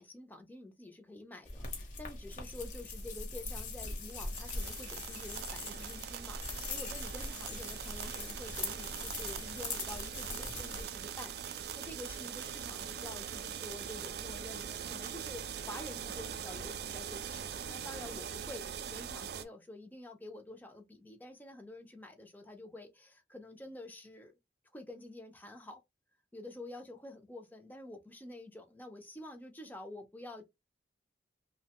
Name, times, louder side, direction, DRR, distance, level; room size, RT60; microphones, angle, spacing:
voice 1, 0.0-24.3 24.7-25.8 26.3-30.4, left 1 dB, 10° left, 0.4 m, -48 dB
sound 1, 1.5-10.8, left 3 dB, 45° left, 0.8 m, -41 dB
sound 2, 4.1-19.4, right 8 dB, 60° right, 0.3 m, -42 dB
2.9 x 2.1 x 2.8 m
head